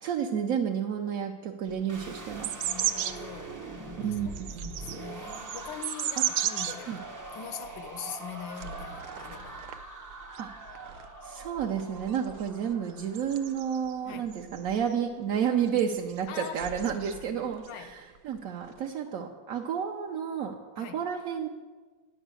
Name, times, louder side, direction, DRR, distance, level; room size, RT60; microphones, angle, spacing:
voice 1, 0.0-2.7 4.0-4.7 6.9-7.0 10.4-10.5 11.2-21.5, right 8 dB, 65° right, 0.9 m, -31 dB
sound 1, 1.7-3.3 3.8-6.7 7.2-7.3 7.6-7.9 8.6-9.8 10.1-14.0 14.3-15.0 15.7-17.8 18.2-18.9, right 11 dB, 80° right, 1.3 m, -35 dB
sound 2, 1.9-13.9, right 2 dB, 25° right, 0.4 m, -43 dB
voice 2, 2.7-3.6 4.3-7.0 7.3-9.7 14.0-14.3 16.3-16.8 17.7-17.9 20.8-21.0, left 8 dB, 75° left, 1.4 m, -43 dB
9.9 x 5.4 x 8.1 m
omnidirectional pair, 2.0 m